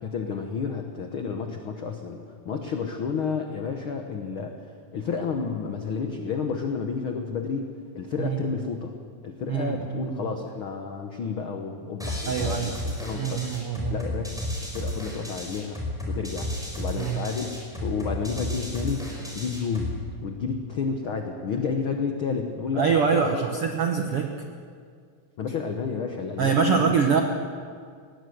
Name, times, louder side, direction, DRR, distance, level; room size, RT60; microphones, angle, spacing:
voice 1, 0.0-8.9 9.2-13.6 13.9-14.4 14.7-15.8 16.1-17.5 17.8-23.6 25.4-27.0, left 5 dB, 80° left, 4 dB, 1.1 m, -31 dB
voice 2, 9.5-10.2 12.3-12.7 13.1-14.0 17.0-17.2 22.7-24.3 26.4-27.2, right 6 dB, 75° right, 3 dB, 1.3 m, -24 dB
sound 1, 12.0-20.0, left 1 dB, ahead, 4.4 m, -33 dB
20.0 x 17.5 x 7.9 m, 2.1 s
omnidirectional pair, 4.1 m